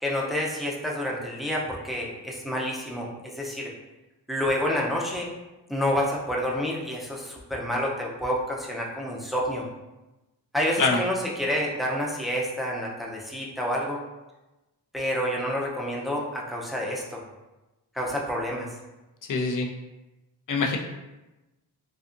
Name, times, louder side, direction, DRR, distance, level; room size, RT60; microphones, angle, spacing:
voice 1, 0.0-3.7 4.3-5.3 5.7-9.6 10.5-14.0 14.9-17.2 17.9-18.7, equal, ahead, -3 dB, 0.5 m, -28 dB
voice 2, 19.3-19.7 20.5-20.8, left 4 dB, 50° left, 1 dB, 0.5 m, -24 dB
2.6 x 2.4 x 2.5 m, 1.0 s
cardioid pair, 55°, 41 cm